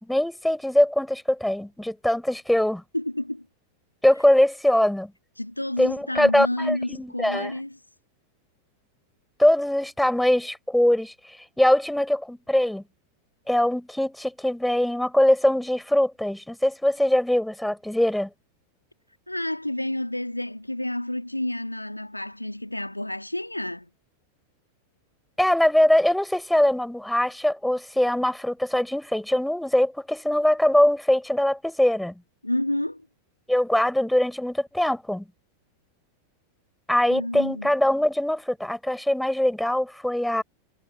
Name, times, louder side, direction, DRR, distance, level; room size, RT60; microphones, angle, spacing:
voice 1, 0.1-2.8 4.0-5.1 5.8-7.5 9.4-11.1 11.6-12.8 13.5-18.3 25.4-32.2 33.5-35.2 36.9-40.4, left 1 dB, ahead, 4.3 m, -22 dB
voice 2, 2.9-3.5 5.4-7.8 19.3-23.9 32.4-33.1 37.1-37.7, left 1 dB, 85° left, 1.9 m, -30 dB
figure-of-eight pair, 90°, 0 cm